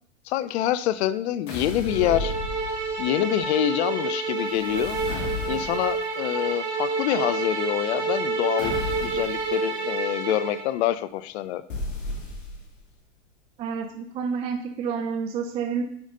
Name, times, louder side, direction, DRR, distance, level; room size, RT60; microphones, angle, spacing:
voice 1, 0.3-2.3 3.0-5.0 5.5-8.8 9.0-11.6, left 13 dB, 60° left, 15 dB, 0.5 m, -26 dB
sound 1, 1.5-3.1 4.5-6.0 8.6-9.4 11.7-12.8, left 2 dB, 80° left, 1.9 m, -33 dB
sound 2, 1.8-10.7, right 3 dB, 65° right, 1.8 m, -29 dB
voice 2, 13.6-15.8, right 6 dB, 20° right, 6 dB, 0.3 m, -29 dB
9.6 x 4.9 x 2.6 m, 0.68 s
hypercardioid pair, 105°, 37 cm